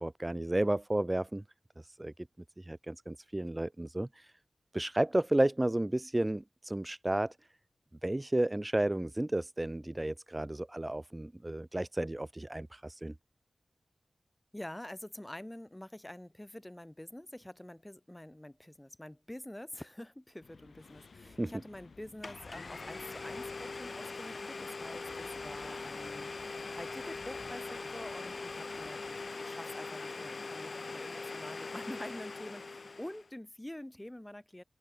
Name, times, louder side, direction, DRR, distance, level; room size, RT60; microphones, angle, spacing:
voice 1, 0.0-1.4 1.8-2.1 2.6-4.3 4.7-7.4 8.0-13.1 21.3-21.5, right 1 dB, 20° right, 0.4 m, -32 dB
voice 2, 14.5-34.6, left 1 dB, 15° left, 3.3 m, -47 dB
sound 1, 20.4-29.3, left 4 dB, 75° left, 6.2 m, -57 dB
Domestic sounds home sounds, 21.8-21.9 22.2-33.3, left 3 dB, 55° left, 0.8 m, -42 dB
open air
wide cardioid pair, 65°, 0 cm